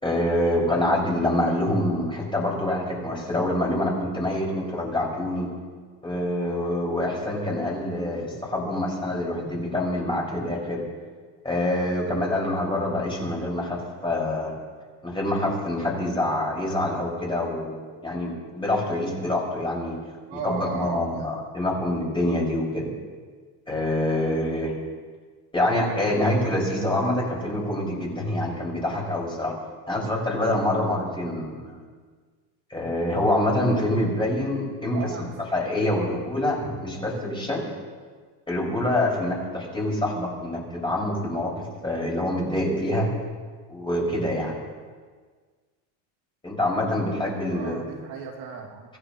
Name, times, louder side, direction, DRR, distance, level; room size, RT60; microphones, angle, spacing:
voice 1, 0.0-5.5 6.0-10.9 11.4-14.6 15.0-20.0 20.3-22.9 23.7-24.7 25.5-29.5 29.9-31.8 32.7-35.1 35.5-37.6 38.5-41.5 41.8-43.1 43.7-44.6 46.4-47.8, left 1 dB, 10° left, -3 dB, 5.6 m, -26 dB
voice 2, 20.3-21.3 26.0-26.3 34.9-35.4 47.5-48.9, right 6 dB, 75° right, 0 dB, 2.4 m, -36 dB
25.5 x 15.0 x 3.1 m, 1.5 s
supercardioid pair, 110°, 49 cm